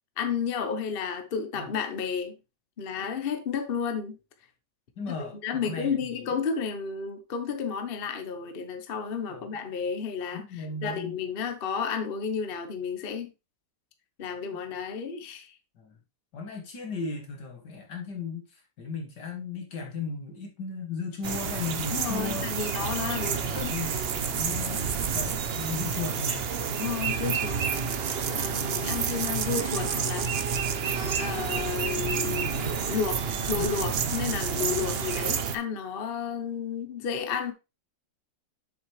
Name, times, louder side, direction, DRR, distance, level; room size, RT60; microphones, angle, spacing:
voice 1, 0.2-2.3 2.8-4.2 5.1-13.3 14.2-15.5 21.9-23.7 26.7-27.6 28.3-30.3 31.2-32.5 32.9-37.5, left 6 dB, 40° left, 0.9 m, -32 dB
voice 2, 5.0-6.0 6.2-6.3 9.3-9.6 10.3-11.1 15.8-16.0 16.3-22.6 23.2-24.9 25.1-26.5 32.3-32.8 33.3-33.7, left 4 dB, 70° left, 2.5 m, -36 dB
sound 1, 21.2-35.6, right 6 dB, 60° right, 0.6 m, -29 dB
7.7 x 6.6 x 3.2 m
omnidirectional pair, 2.0 m